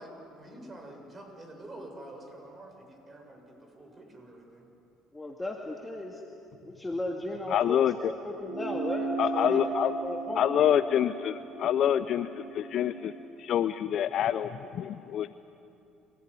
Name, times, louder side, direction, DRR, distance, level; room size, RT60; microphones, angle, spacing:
voice 1, 0.0-4.7, right 1 dB, 30° right, 3 dB, 6.8 m, -47 dB
voice 2, 5.1-6.2 6.6-10.5, left 2 dB, 15° left, 0 dB, 2.3 m, -36 dB
voice 3, 7.5-8.1 9.2-9.9 10.3-13.1 13.4-15.4, left 10 dB, 60° left, 12 dB, 0.6 m, -27 dB
sound 1, 8.4-13.2, right 3 dB, 50° right, 6.1 m, -36 dB
29.0 x 15.5 x 9.9 m, 2.7 s
hypercardioid pair, 70°, 0 cm